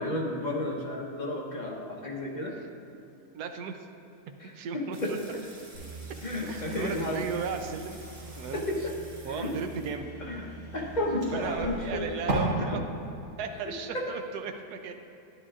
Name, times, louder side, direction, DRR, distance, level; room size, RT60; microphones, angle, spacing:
voice 1, 0.0-2.5 4.4-5.1 6.2-7.2 8.5-8.9 9.3-9.5 10.2-10.4 10.7-12.1 12.6-12.8 13.6-14.0, left 1 dB, 35° left, -2 dB, 1.0 m, -32 dB
voice 2, 3.3-3.9 4.5-5.2 6.5-8.0 8.4-8.6 9.2-10.1 11.3-12.8 13.4-14.9, right 5 dB, 85° right, 6 dB, 1.2 m, -35 dB
sound 1, 4.9-10.7, right 2 dB, 30° right, 0.8 m, -52 dB
sound 2, 5.7-12.3, right 2 dB, 45° right, 2.5 m, -40 dB
11.0 x 10.0 x 2.4 m, 2.8 s
omnidirectional pair, 1.6 m